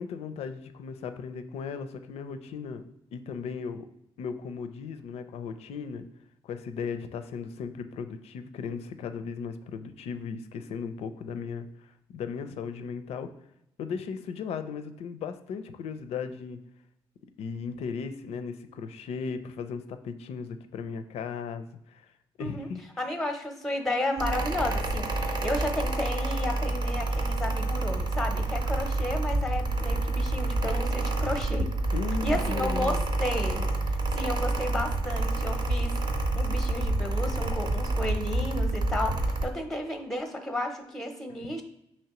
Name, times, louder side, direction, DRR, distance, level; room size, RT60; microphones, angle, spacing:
voice 1, 0.0-2.8 3.1-3.9 4.2-6.1 6.4-13.3 13.8-16.6 17.4-22.1 22.4-22.8 31.9-33.0, left 6 dB, 80° left, 9 dB, 0.4 m, -36 dB
voice 2, 23.0-31.7 32.2-36.0 36.4-39.2 39.4-41.6, left 1 dB, 5° left, 5 dB, 0.6 m, -32 dB
Mechanical fan, 24.2-39.5, right 2 dB, 45° right, 0.7 m, -28 dB
5.7 x 3.0 x 3.0 m, 0.80 s
cardioid pair, 95°, 11 cm